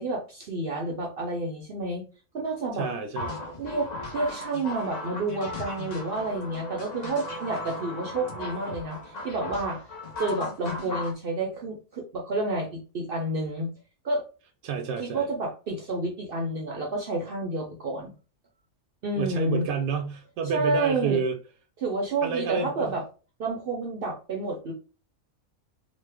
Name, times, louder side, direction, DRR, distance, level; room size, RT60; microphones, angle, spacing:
voice 1, 0.0-2.0 2.3-2.9 3.6-9.9 10.2-13.7 14.0-14.2 15.0-18.1 19.0-19.6 20.4-21.2 21.8-23.0 23.4-24.7, right 2 dB, 60° right, 0.6 m, -30 dB
voice 2, 2.8-3.4 8.1-8.3 14.6-15.3 19.2-21.3 22.2-22.9, right 6 dB, 80° right, 1.0 m, -29 dB
sound 1, 3.2-11.1, left 2 dB, 40° left, 0.6 m, -36 dB
3.0 x 2.1 x 3.3 m
omnidirectional pair, 1.5 m